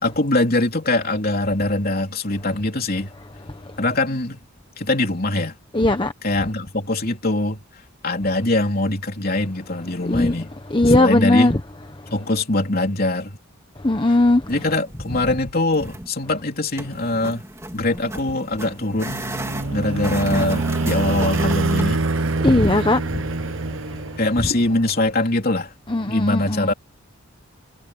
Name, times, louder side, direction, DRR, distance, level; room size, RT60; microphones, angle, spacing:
voice 1, 0.0-3.1 3.8-4.4 4.8-5.6 6.2-7.6 8.0-10.5 10.9-11.5 12.1-13.4 14.5-17.4 17.7-19.2 19.7-22.1 24.2-25.7 26.1-26.7, left 2 dB, 40° left, 3.6 m, -22 dB
voice 2, 5.7-6.1 10.1-10.3 10.7-11.6 13.8-14.4 22.4-23.0 25.9-26.7, left 2 dB, 20° left, 1.0 m, -17 dB
sound 1, 14.4-15.4 15.7-16.1 16.8-21.9, right 1 dB, 15° right, 2.7 m, -34 dB
sound 2, 18.9-24.6, right 3 dB, 60° right, 0.8 m, -25 dB
head